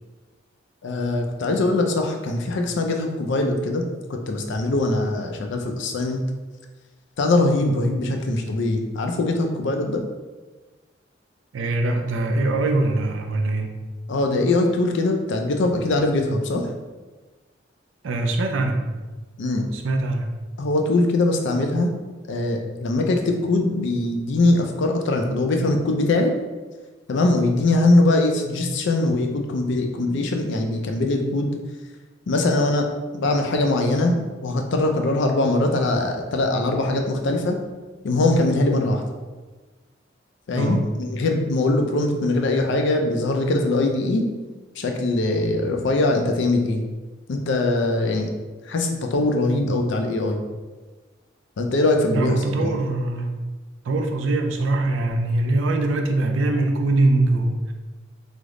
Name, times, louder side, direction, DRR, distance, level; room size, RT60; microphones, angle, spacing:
voice 1, 0.8-3.8 4.1-6.2 7.2-10.0 14.1-16.7 19.4-19.7 20.6-21.9 22.3-26.3 27.1-31.6 32.3-32.9 33.1-34.1 34.4-37.6 38.0-39.0 40.5-44.2 44.8-46.8 47.3-48.3 48.7-50.4 51.6-52.8, left 2 dB, 65° left, 3 dB, 0.4 m, -22 dB
voice 2, 11.5-13.7 18.0-18.8 19.7-20.3 40.5-40.8 52.1-53.3 53.8-57.7, right 2 dB, 75° right, 4 dB, 0.4 m, -22 dB
3.3 x 2.0 x 3.6 m, 1.3 s
head